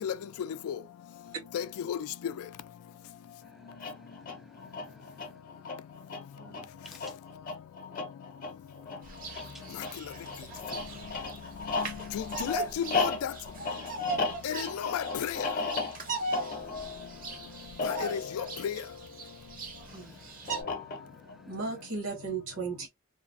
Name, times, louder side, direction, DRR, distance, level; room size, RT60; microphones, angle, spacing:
voice 1, 0.0-0.8 1.5-2.3 9.7-9.8 11.8-13.3 14.4-15.5 17.8-18.8, left 8 dB, 85° left, 0.3 m, -34 dB
voice 2, 3.4-5.2 6.9-7.0 8.9-9.0 9.3-9.7 11.6-11.9 16.5-17.1 17.4-17.6 19.9-21.4, equal, ahead, 0.3 m, -56 dB
sound 1, 3.7-19.5 20.5-21.3, left 4 dB, 40° left, 0.7 m, -36 dB
voice 3, 6.4-6.7 19.9-20.1 21.5-22.9, right 4 dB, 75° right, 1.3 m, -36 dB
Bird vocalization bird call bird song, 9.0-20.6, right 3 dB, 40° right, 0.6 m, -39 dB
3.1 x 2.0 x 2.5 m
head